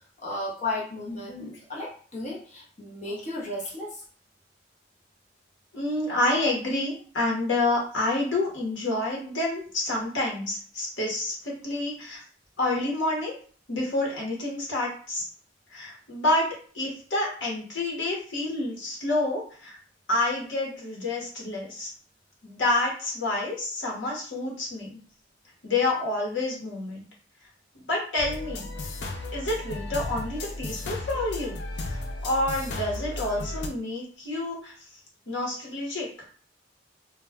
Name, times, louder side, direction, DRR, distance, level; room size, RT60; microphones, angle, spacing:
voice 1, 0.2-4.0, left 2 dB, 40° left, -3 dB, 0.7 m, -34 dB
voice 2, 5.7-12.2 12.6-13.3 13.7-15.2 15.7-16.5 16.7-19.8 20.1-21.9 22.4-25.0 25.6-27.0 27.7-28.7 29.3-31.6 31.9-34.7 35.3-36.1, left 2 dB, 80° left, -2 dB, 0.9 m, -28 dB
sound 1, 28.2-33.7, left 2 dB, 65° left, 0.4 m, -34 dB
2.2 x 2.1 x 3.4 m, 0.43 s
head